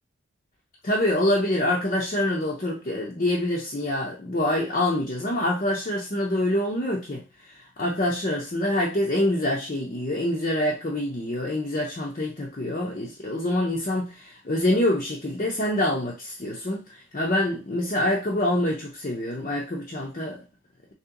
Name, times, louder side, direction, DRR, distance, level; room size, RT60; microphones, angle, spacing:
voice 1, 0.8-20.4, left 1 dB, 35° left, 0.6 m, -26 dB
3.0 x 2.9 x 3.7 m
head